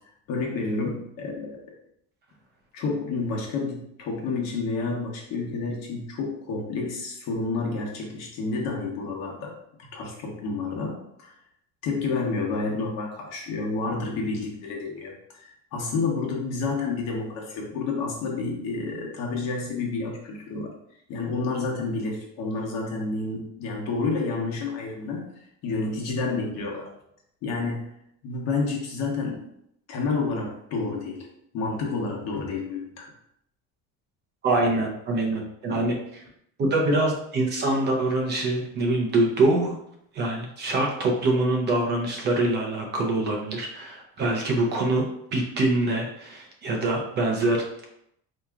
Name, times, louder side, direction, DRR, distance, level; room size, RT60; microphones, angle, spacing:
voice 1, 0.3-1.6 2.7-9.5 9.8-11.3 11.8-20.7 21.1-25.3 25.6-26.9 27.4-27.9 28.2-29.4 29.9-31.3 31.5-33.1, left 3 dB, 60° left, -1 dB, 1.0 m, -29 dB
voice 2, 34.4-36.2 36.6-39.7 40.1-47.9, right 2 dB, 35° right, 0 dB, 0.6 m, -24 dB
4.4 x 2.8 x 2.4 m, 0.75 s
cardioid pair, 170°, 31 cm